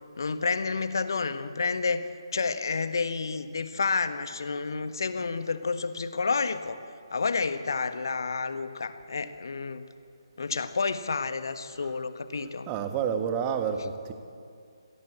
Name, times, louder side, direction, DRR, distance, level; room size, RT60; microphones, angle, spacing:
voice 1, 0.2-2.0 2.3-6.8 7.1-9.8 10.4-12.7, left 4 dB, 55° left, 1.5 m, -30 dB
voice 2, 12.7-14.1, right 7 dB, 20° right, 1.6 m, -29 dB
26.5 x 17.5 x 8.3 m
figure-of-eight pair, 145°, 3 cm